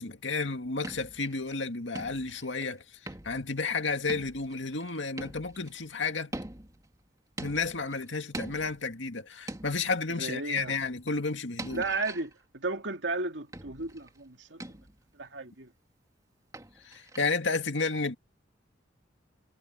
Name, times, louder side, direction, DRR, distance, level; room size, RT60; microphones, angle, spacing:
voice 1, 0.0-2.8 3.2-6.3 7.4-11.8 16.8-18.1, left 4 dB, 75° left, 2.1 m, -32 dB
sound 1, 0.6-1.6 1.9-2.7 3.1-3.6 4.1-5.8 6.3-6.9 7.4-8.0 8.3-9.0 9.5-10.0 10.6-10.9 11.6-12.3 13.5-14.2 14.6-15.0 16.5-17.4, right 1 dB, 20° right, 2.4 m, -43 dB
voice 2, 10.2-10.7 11.7-14.8 15.1-15.7, right 3 dB, 70° right, 2.4 m, -34 dB
head